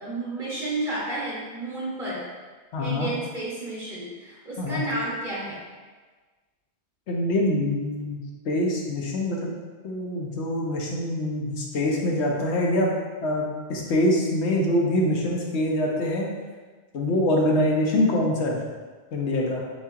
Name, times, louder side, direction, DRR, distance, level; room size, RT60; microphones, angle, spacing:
voice 1, 0.0-2.2 2.8-5.6, right 2 dB, 50° right, -6 dB, 1.0 m, -31 dB
voice 2, 2.7-3.1 4.6-4.8 7.1-8.2 8.4-9.5 9.8-12.9 13.2-16.3 16.9-18.6 19.1-19.6, left 1 dB, 80° left, -1 dB, 1.1 m, -24 dB
7.3 x 2.8 x 2.4 m, 1.4 s
omnidirectional pair, 1.1 m